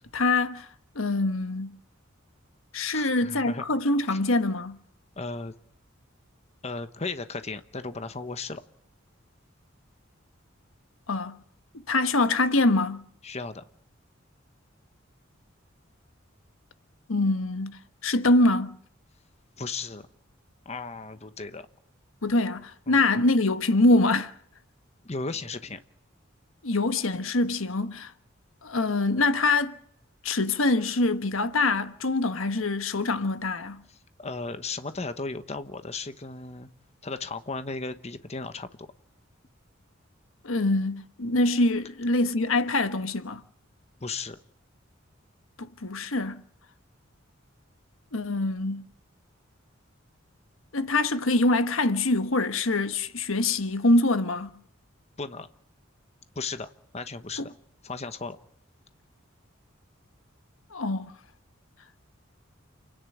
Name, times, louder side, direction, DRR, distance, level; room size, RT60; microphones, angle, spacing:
voice 1, 0.1-0.7 0.9-1.7 2.7-4.8 11.1-11.4 11.7-13.0 17.1-18.8 22.2-24.3 26.6-28.1 28.6-29.8 30.2-33.8 40.4-43.4 45.6-46.4 48.1-48.8 50.7-54.5 57.4-57.5 60.7-61.1, left 2 dB, 85° left, 1.3 m, -24 dB
voice 2, 2.9-3.6 4.1-4.2 5.2-5.5 6.6-8.6 13.2-13.6 19.6-20.1 20.6-21.7 22.9-23.0 25.0-25.8 34.2-36.7 37.0-38.7 44.0-44.4 55.2-55.5 56.3-57.5 57.8-58.4, left 3 dB, 35° left, 1.1 m, -35 dB
29.0 x 10.5 x 9.2 m
head